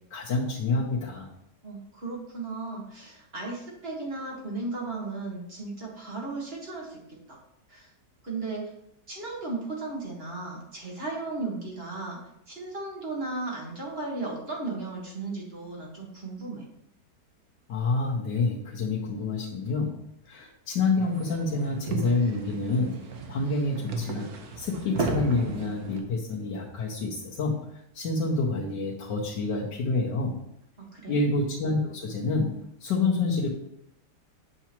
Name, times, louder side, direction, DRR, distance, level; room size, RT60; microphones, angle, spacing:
voice 1, 0.1-1.3 17.7-23.0 23.3-30.4 31.1-33.5, left 3 dB, 85° left, -5 dB, 1.6 m, -28 dB
voice 2, 1.6-7.0 7.3-7.4 7.7-7.9 8.2-8.7 9.1-12.2 12.5-16.7 30.8-31.3, right 3 dB, 35° right, -3 dB, 1.6 m, -35 dB
sound 1, 21.0-26.0, right 3 dB, 65° right, 1.3 m, -34 dB
8.4 x 5.9 x 2.9 m, 0.77 s
omnidirectional pair, 1.8 m